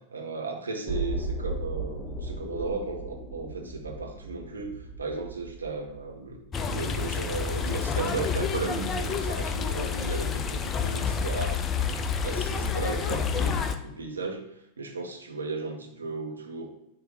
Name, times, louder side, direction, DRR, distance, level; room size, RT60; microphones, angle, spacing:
voice 1, 0.1-6.4 6.6-14.5 14.8-16.7, right 4 dB, 75° right, 2 dB, 1.0 m, -35 dB
sound 1, 0.9-6.8 7.2-7.3, right 2 dB, 5° right, 1.7 m, -36 dB
sound 2, 6.5-13.8, left 6 dB, 25° left, 0.5 m, -29 dB
9.6 x 3.3 x 3.1 m, 0.87 s
figure-of-eight pair, 90°, 0 cm